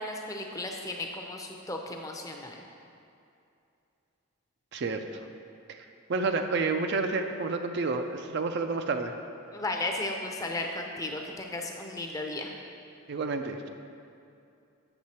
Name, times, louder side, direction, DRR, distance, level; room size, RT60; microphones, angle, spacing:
voice 1, 0.0-2.6 9.5-12.5, left 2 dB, 15° left, 1 dB, 0.5 m, -35 dB
voice 2, 4.7-5.0 5.7-5.8 6.1-9.1 13.1-13.7, right 3 dB, 55° right, 6 dB, 0.4 m, -29 dB
7.9 x 6.6 x 4.3 m, 2.6 s
head